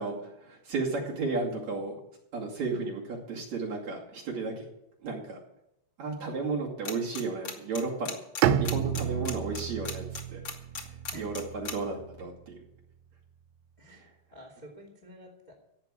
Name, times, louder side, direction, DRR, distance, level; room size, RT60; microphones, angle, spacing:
voice 1, 0.0-2.0 2.3-4.6 5.0-5.4 6.0-8.2 8.6-10.4 11.1-12.6, right 3 dB, 45° right, -3 dB, 3.1 m, -33 dB
sound 1, 6.8-7.2 7.4-11.7, left 5 dB, 85° left, 1.0 m, -36 dB
Bowed string instrument, 8.4-12.3, right 10 dB, 80° right, 2.6 m, -31 dB
voice 2, 13.8-15.5, equal, 20° left, -1 dB, 1.2 m, -50 dB
16.5 x 5.9 x 9.8 m, 0.82 s
omnidirectional pair, 5.4 m